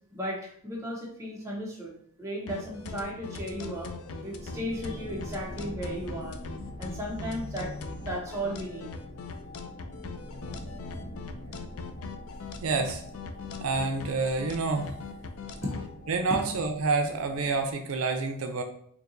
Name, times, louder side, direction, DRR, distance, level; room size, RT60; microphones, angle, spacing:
voice 1, 0.1-1.9 2.2-3.9 4.2-6.4 6.8-8.9 15.6-15.8, equal, 15° right, -3 dB, 0.9 m, -35 dB
sound 1, 2.5-15.9, left 4 dB, 85° left, 0.4 m, -41 dB
sound 2, 2.6-8.1, equal, 35° right, 1.1 m, -45 dB
sound 3, 4.4-17.7, left 1 dB, 55° left, 1.0 m, -45 dB
voice 2, 12.6-13.0 13.6-14.9 16.1-18.6, right 3 dB, 75° right, 5 dB, 0.5 m, -28 dB
4.5 x 2.8 x 2.6 m, 0.64 s
head